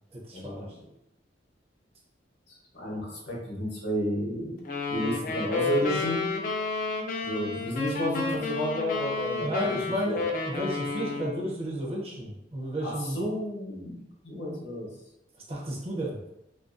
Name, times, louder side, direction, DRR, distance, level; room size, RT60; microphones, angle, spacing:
voice 1, 0.3-0.9 2.5-4.6 4.9-6.3 7.2-10.4 12.8-14.9, equal, 60° left, -3 dB, 0.8 m, -32 dB
sound 1, 4.6-11.5, left 4 dB, 45° left, 0.3 m, -31 dB
voice 2, 9.4-13.2 15.5-16.2, equal, 35° right, -2 dB, 0.5 m, -32 dB
2.4 x 2.2 x 2.4 m, 0.84 s
head